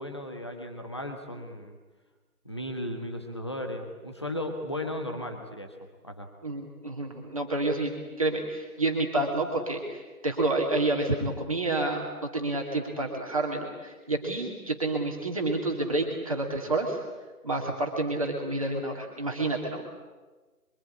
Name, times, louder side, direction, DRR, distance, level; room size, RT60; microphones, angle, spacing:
voice 1, 0.0-1.8 2.4-5.8 6.0-6.3, left 1 dB, 15° left, 4 dB, 1.5 m, -35 dB
voice 2, 6.4-7.9 8.2-17.0 17.4-19.8, right 2 dB, 20° right, -1 dB, 2.5 m, -29 dB
24.5 x 24.5 x 10.0 m, 1.3 s
figure-of-eight pair, 180°, 46 cm